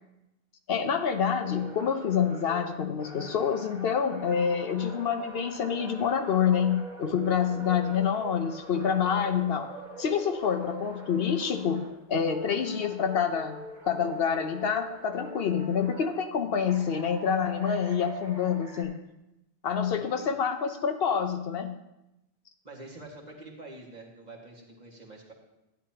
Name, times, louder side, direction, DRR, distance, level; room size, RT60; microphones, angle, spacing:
voice 1, 0.7-9.7 10.0-11.8 12.1-13.6 13.9-18.9 19.6-21.7, left 7 dB, 70° left, 8 dB, 0.9 m, -27 dB
sound 1, 1.4-12.0 12.2-16.2 16.7-18.8, right 2 dB, 25° right, 1.9 m, -44 dB
voice 2, 7.5-8.2 19.7-20.4 22.6-25.3, right 2 dB, 40° right, -3 dB, 2.0 m, -47 dB
12.0 x 10.0 x 2.8 m, 0.91 s
omnidirectional pair, 1.1 m